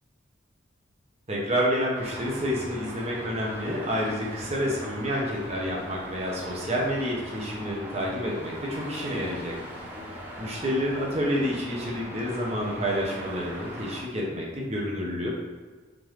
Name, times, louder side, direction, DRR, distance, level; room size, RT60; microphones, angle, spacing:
voice 1, 1.3-9.6 9.9-15.3, equal, 35° right, -3 dB, 0.9 m, -29 dB
Traffic noise roadway noise, 1.9-14.0, equal, 10° right, 0.8 m, -41 dB
3.8 x 3.6 x 3.2 m, 1.3 s
head